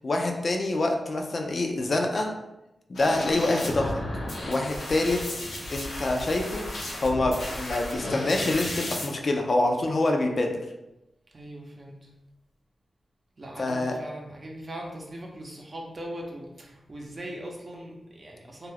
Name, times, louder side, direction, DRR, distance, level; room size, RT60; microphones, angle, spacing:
voice 1, 0.0-2.3 2.9-4.0 4.5-5.2 5.7-10.5 13.6-13.9, left 2 dB, 55° left, 2 dB, 0.4 m, -26 dB
sound 1, 2.9-9.1, left 1 dB, 90° left, 0.7 m, -34 dB
voice 2, 11.3-12.1 13.4-18.7, right 1 dB, 45° right, -1 dB, 0.6 m, -40 dB
2.3 x 2.2 x 3.3 m, 0.93 s
cardioid pair, 70°, 0 cm